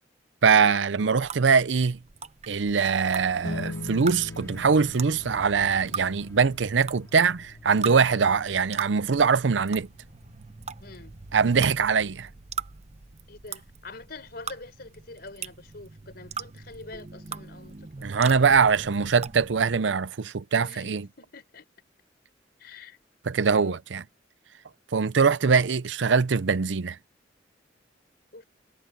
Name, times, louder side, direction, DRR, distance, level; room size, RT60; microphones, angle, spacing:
voice 1, 0.4-2.0 2.5-9.9 11.3-12.3 18.0-21.1 23.3-24.0 24.9-27.0, right 5 dB, 85° right, 0.6 m, -22 dB
sound 1, 1.2-19.8, right 6 dB, 40° right, 0.7 m, -41 dB
sound 2, 2.7-9.8, left 1 dB, 15° left, 3.0 m, -54 dB
sound 3, 3.4-14.2, left 2 dB, 90° left, 1.1 m, -44 dB
voice 2, 10.8-11.1 13.3-17.9 20.6-21.7 22.6-23.0 23.5-23.8 28.3-28.4, left 3 dB, 60° left, 4.2 m, -45 dB
head